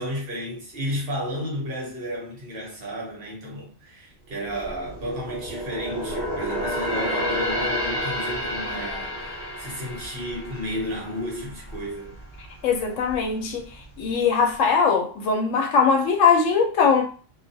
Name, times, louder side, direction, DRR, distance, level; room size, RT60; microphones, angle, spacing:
voice 1, 0.0-12.2, equal, 55° right, 1.0 m, -33 dB
sound 1, 4.3-11.9 12.2-12.5 13.0-13.7 14.0-14.1, equal, 20° left, 1.3 m, -30 dB
voice 2, 12.6-17.0, left 5 dB, 80° left, 1.0 m, -21 dB
2.4 x 2.3 x 2.6 m
omnidirectional pair, 1.3 m